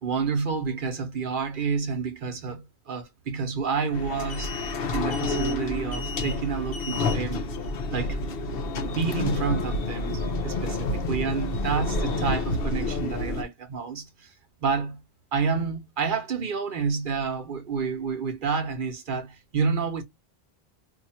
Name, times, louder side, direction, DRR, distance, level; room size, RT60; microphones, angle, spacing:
voice 1, 0.0-7.5 7.9-8.2 8.9-14.3 14.6-15.0 15.3-20.0, right 5 dB, 55° right, 0.9 m, -29 dB
sound 1, 3.9-13.4, left 2 dB, 65° left, 0.9 m, -29 dB
2.7 x 2.4 x 4.2 m
omnidirectional pair, 1.0 m